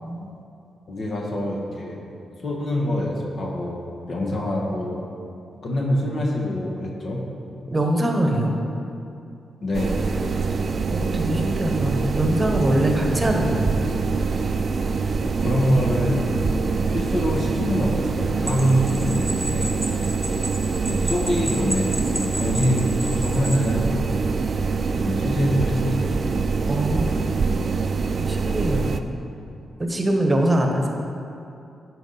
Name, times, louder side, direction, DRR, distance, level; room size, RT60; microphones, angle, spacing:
voice 1, 0.9-2.0 2.4-5.0 5.6-7.3 9.6-10.1 15.2-19.8 20.9-23.9 25.0-26.2, equal, 60° left, -1 dB, 1.2 m, -25 dB
voice 2, 7.7-8.5 10.9-13.8 26.7-27.5 28.2-28.9 29.8-30.9, right 1 dB, 25° right, 2 dB, 1.1 m, -23 dB
sound 1, 9.7-29.0, right 4 dB, 55° right, 0.4 m, -24 dB
sound 2, 18.5-23.7, equal, 5° left, 1.7 m, -33 dB
10.5 x 4.7 x 4.0 m, 2.7 s
supercardioid pair, 50°, 0 cm